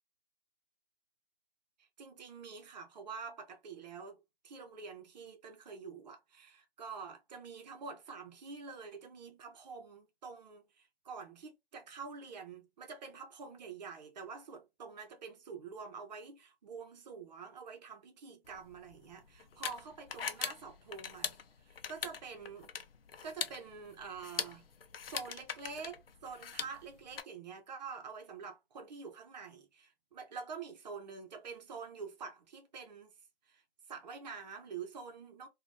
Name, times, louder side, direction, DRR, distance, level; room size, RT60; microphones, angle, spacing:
voice 1, 1.8-21.4 21.6-22.7 23.2-24.7 25.1-33.1 33.5-33.6 33.9-35.5, right 5 dB, 45° right, 0.8 m, -47 dB
sound 1, 18.5-27.2, left 7 dB, 75° left, 0.6 m, -42 dB
2.5 x 2.4 x 3.3 m
hypercardioid pair, 140°, 30 cm